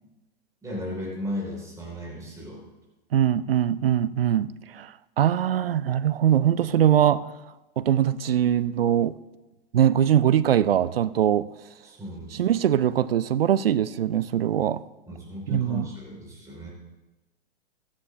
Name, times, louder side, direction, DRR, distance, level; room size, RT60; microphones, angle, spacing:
voice 1, 0.6-2.6 11.8-12.5 15.1-16.7, equal, 10° right, 4.8 m, -35 dB
voice 2, 3.1-7.3 7.8-9.2 9.7-11.5 12.3-14.8 15.5-15.9, right 10 dB, 75° right, 0.5 m, -22 dB
16.0 x 13.0 x 2.6 m
figure-of-eight pair, 105°, 29 cm